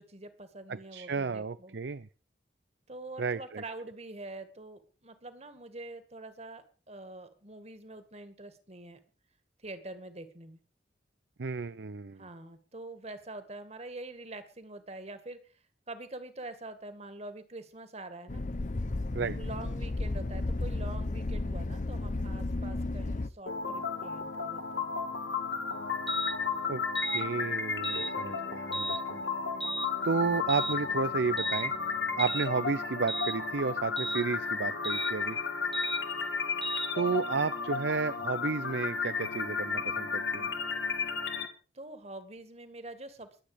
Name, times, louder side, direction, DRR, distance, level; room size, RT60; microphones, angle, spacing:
voice 1, 0.0-1.8 2.9-9.0 9.6-10.6 12.2-15.6 15.9-18.5 19.3-24.9 41.7-43.4, right 2 dB, 40° right, 10 dB, 2.1 m, -45 dB
voice 2, 0.7-2.1 3.2-3.6 11.4-12.2 19.1-19.4 26.7-26.8 27.1-29.2 30.0-31.7 32.2-35.4 36.9-40.5, right 4 dB, 80° right, 15 dB, 0.6 m, -32 dB
sound 1, 18.3-23.3, left 2 dB, 45° left, 0.7 m, -33 dB
sound 2, 23.5-41.5, left 5 dB, 90° left, 2.1 m, -33 dB
sound 3, 26.1-26.4 26.9-27.2 27.8-28.1 28.7-29.0 29.6-29.9 30.5-30.8 31.4-31.7 32.2-32.5 33.1-33.4 34.0-34.2 34.8-35.1 35.7-36.0 36.6-36.9, right 2 dB, ahead, 1.4 m, -34 dB
22.0 x 8.5 x 5.1 m, 0.37 s
head